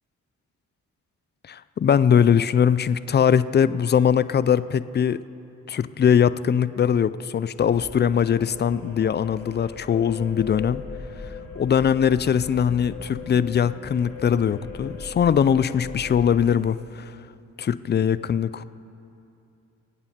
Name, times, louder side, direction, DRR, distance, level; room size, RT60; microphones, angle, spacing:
voice 1, 1.5-5.2 5.7-10.8 11.6-17.1 17.6-18.6, left 8 dB, 30° left, 16 dB, 0.4 m, -21 dB
sound 1, 7.6-16.4, left 4 dB, 70° left, 3.3 m, -39 dB
24.0 x 8.7 x 2.8 m, 2.7 s
hypercardioid pair, 40°, 38 cm